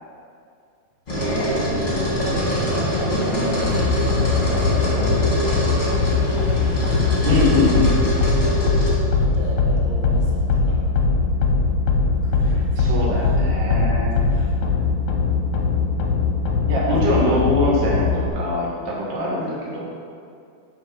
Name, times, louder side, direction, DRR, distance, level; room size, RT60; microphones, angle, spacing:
sound 1, 1.1-9.0, equal, 25° left, 1.3 m, -23 dB
voice 1, 1.9-6.2 9.1-10.8 12.2-13.4 14.3-14.6, right 2 dB, 75° right, -3 dB, 2.7 m, -36 dB
sound 2, 3.6-18.3, left 4 dB, 75° left, 1.8 m, -21 dB
voice 2, 7.2-8.0 12.5-14.1 16.7-19.8, left 1 dB, 45° right, -5 dB, 1.6 m, -23 dB
8.3 x 4.6 x 5.7 m, 2.3 s
omnidirectional pair, 4.2 m